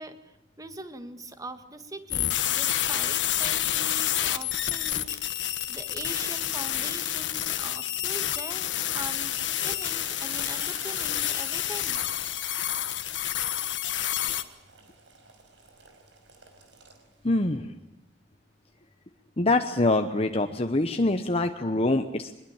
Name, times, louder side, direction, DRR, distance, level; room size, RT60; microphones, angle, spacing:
voice 1, 0.0-8.7 8.9-12.0, right 2 dB, 20° right, 9 dB, 1.7 m, -42 dB
sound 1, 2.1-14.4, left 12 dB, 85° left, 1.3 m, -29 dB
Boiling, 9.5-17.3, right 4 dB, 85° right, 5.1 m, -50 dB
voice 2, 17.2-17.7 19.4-22.3, left 2 dB, 35° left, 6 dB, 1.0 m, -25 dB
23.0 x 21.5 x 8.9 m, 0.91 s
head